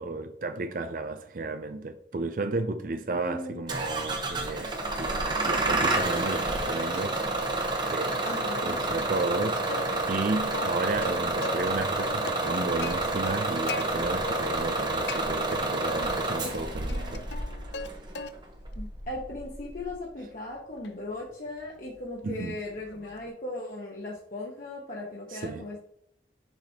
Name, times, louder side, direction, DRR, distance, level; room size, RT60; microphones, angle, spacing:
voice 1, 0.0-4.7 5.0-7.2 7.5-8.3 8.6-17.3 22.2-22.5 25.3-25.6, right 3 dB, 50° right, 0.4 m, -33 dB
voice 2, 3.1-3.6 8.2-8.8 18.8-25.8, left 2 dB, 45° left, 1.1 m, -38 dB
Bus / Engine starting, 3.7-19.9, right 2 dB, 25° right, 1.0 m, -29 dB
Plucked string instrument, 8.2-8.9 9.1-9.3 9.7-11.7 12.0-13.8 14.2-14.8 15.1-16.1 16.4-17.9 18.1-18.6 19.1-23.3, left 4 dB, 75° left, 0.6 m, -40 dB
6.8 x 6.0 x 2.9 m
head